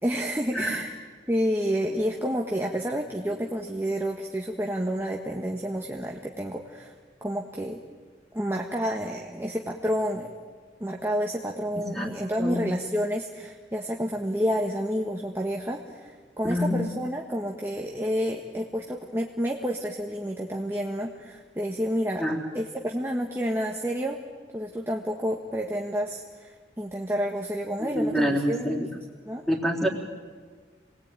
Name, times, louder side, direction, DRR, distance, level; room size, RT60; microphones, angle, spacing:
voice 1, 0.0-0.9 1.3-6.9 7.2-7.8 8.3-10.3 10.8-22.2 22.5-24.2 24.5-28.8 29.2-29.4, equal, 15° right, 0 dB, 1.4 m, -29 dB
voice 2, 11.7-12.1 12.4-12.7 16.4-16.8 22.2-22.4 27.8-28.9 29.5-29.9, equal, ahead, -2 dB, 3.7 m, -27 dB
27.5 x 20.0 x 9.0 m, 1.6 s
head